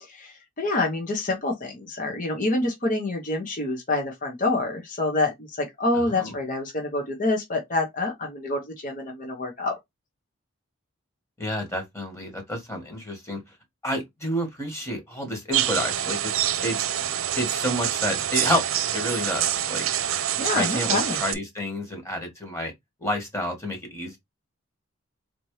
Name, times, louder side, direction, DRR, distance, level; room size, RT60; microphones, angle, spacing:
voice 1, 0.0-9.8 20.4-21.2, left 2 dB, 40° left, 1.1 m, -27 dB
voice 2, 11.4-13.4 13.8-16.3 16.6-16.8 17.4-19.9 20.5-22.7 23.0-24.2, equal, 15° left, 1.6 m, -29 dB
sound 1, 15.5-21.3, right 11 dB, 85° right, 0.6 m, -26 dB
4.2 x 2.9 x 3.2 m
head